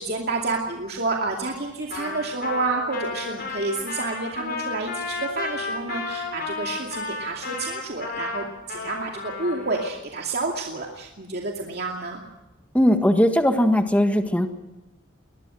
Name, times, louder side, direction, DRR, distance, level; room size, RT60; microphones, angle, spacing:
voice 1, 0.0-12.2, right 3 dB, 55° right, 0 dB, 2.5 m, -29 dB
Trumpet, 1.9-9.9, left 3 dB, 50° left, 6.0 m, -33 dB
voice 2, 12.7-14.5, equal, 5° left, 6 dB, 1.6 m, -19 dB
21.5 x 20.5 x 6.3 m, 1.0 s
head